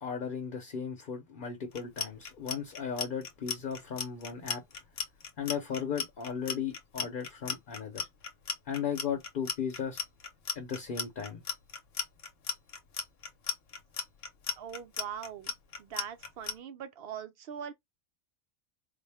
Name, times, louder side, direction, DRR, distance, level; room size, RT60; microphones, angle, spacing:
voice 1, 0.0-4.6 5.4-8.1 8.7-10.0 10.6-11.4, left 7 dB, 50° left, 0.9 m, -36 dB
Clock, 1.7-16.5, left 7 dB, 85° left, 1.1 m, -36 dB
voice 2, 14.6-15.5 15.8-17.7, right 8 dB, 65° right, 0.7 m, -41 dB
4.1 x 2.1 x 3.3 m
omnidirectional pair, 1.3 m